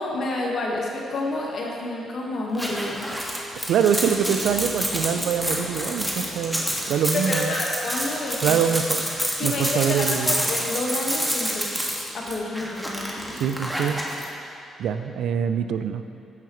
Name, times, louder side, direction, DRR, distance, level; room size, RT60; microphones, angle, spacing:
voice 1, 0.0-3.1 7.1-8.6 9.3-11.8 12.1-13.3, left 2 dB, 60° left, -2 dB, 1.5 m, -29 dB
sound 1, 2.5-14.2, equal, ahead, 1.6 m, -28 dB
voice 2, 3.7-7.5 8.4-9.0 9.4-10.4 13.3-14.0 14.8-16.0, right 8 dB, 80° right, 9 dB, 0.4 m, -24 dB
sound 2, 4.0-7.1, left 1 dB, 45° left, 1.5 m, -41 dB
15.0 x 5.7 x 3.1 m, 2.6 s
cardioid pair, 70°, 0 cm